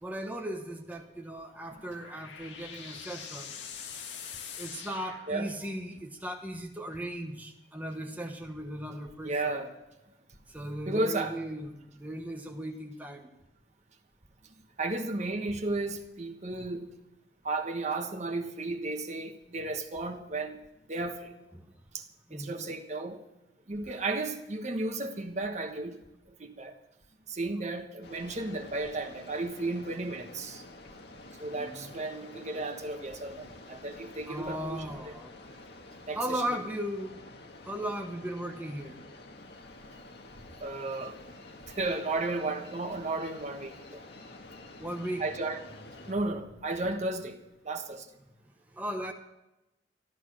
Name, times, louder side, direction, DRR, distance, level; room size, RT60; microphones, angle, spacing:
voice 1, 0.0-3.6 4.6-9.6 10.5-13.3 21.5-21.6 22.3-22.7 31.5-31.9 34.3-35.3 36.1-37.1 37.6-38.9 44.8-45.3 48.7-49.1, right 1 dB, 10° right, 2 dB, 1.1 m, -37 dB
sound 1, 1.4-5.9, left 7 dB, 80° left, 1.8 m, -44 dB
voice 2, 9.2-9.7 10.9-11.4 14.8-16.9 17.4-20.6 20.9-21.3 21.9-22.0 22.3-23.2 23.7-25.9 26.4-26.7 27.3-30.6 31.4-34.8 36.1-36.4 40.6-41.2 41.7-44.0 45.2-45.6 46.1-47.4 47.6-48.1, right 2 dB, 40° right, 5 dB, 1.4 m, -33 dB
sound 2, 28.0-46.1, left 2 dB, 65° left, 1.7 m, -49 dB
13.5 x 13.0 x 6.3 m, 0.94 s
head